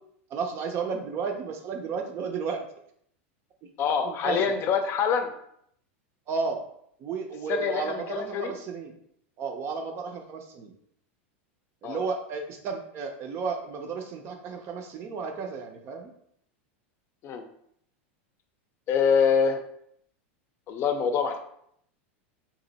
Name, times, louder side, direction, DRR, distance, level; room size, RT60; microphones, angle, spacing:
voice 1, 0.3-2.7 3.6-3.7 4.0-4.6 6.3-6.6 7.0-8.9 9.4-10.7 11.8-16.1, right 5 dB, 40° right, 4 dB, 0.6 m, -33 dB
voice 2, 3.8-5.3 7.5-8.5 11.8-12.0 17.2-17.4 18.9-19.6 20.7-21.4, left 6 dB, 40° left, 5 dB, 0.6 m, -25 dB
2.9 x 2.6 x 4.0 m, 0.70 s
supercardioid pair, 125°, 7 cm